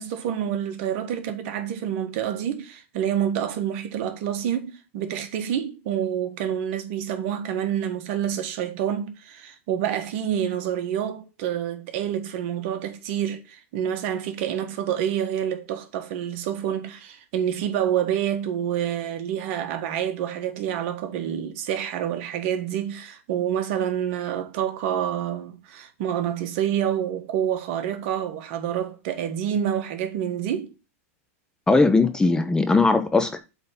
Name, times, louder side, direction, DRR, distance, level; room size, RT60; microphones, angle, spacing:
voice 1, 0.0-30.7, right 9 dB, 55° right, 1.4 m, -28 dB
voice 2, 31.7-33.4, left 3 dB, 10° left, 0.6 m, -19 dB
7.7 x 3.5 x 5.7 m
hypercardioid pair, 125°, 8 cm